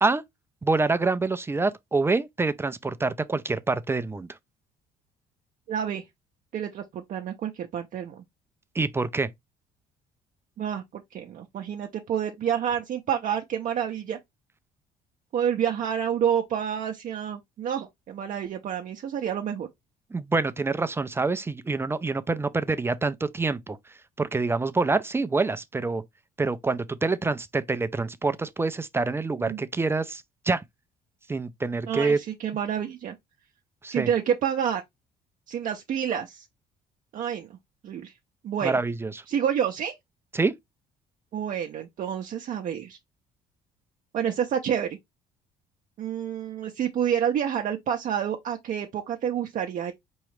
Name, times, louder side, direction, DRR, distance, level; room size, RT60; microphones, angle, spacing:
voice 1, 0.6-4.4 8.7-9.3 20.1-23.8 24.2-26.0 26.4-30.6 31.3-32.2 33.8-34.1 38.6-39.2 40.3-40.5, right 3 dB, 15° right, 0.4 m, -26 dB
voice 2, 5.7-6.0 6.5-8.2 10.6-14.2 15.3-19.7 29.4-29.6 31.9-33.1 33.9-34.8 35.5-36.4 37.1-37.6 37.8-38.1 38.4-38.8 39.3-40.0 41.3-43.0 44.1-45.0 46.0-49.9, right 9 dB, 50° right, 0.6 m, -28 dB
4.7 x 3.1 x 3.1 m
cardioid pair, 110°, 17 cm